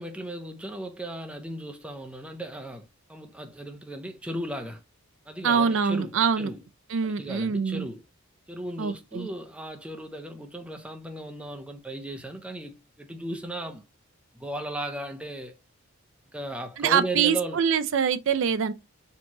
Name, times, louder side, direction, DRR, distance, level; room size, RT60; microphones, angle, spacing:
voice 1, 0.0-4.8 5.3-6.6 7.0-8.0 8.5-13.8 14.3-15.6 16.3-17.6, right 1 dB, 5° right, 0.5 m, -36 dB
voice 2, 5.4-6.5 6.9-7.9 8.8-9.3 16.8-18.7, right 6 dB, 60° right, 0.4 m, -24 dB
4.4 x 2.9 x 2.8 m
head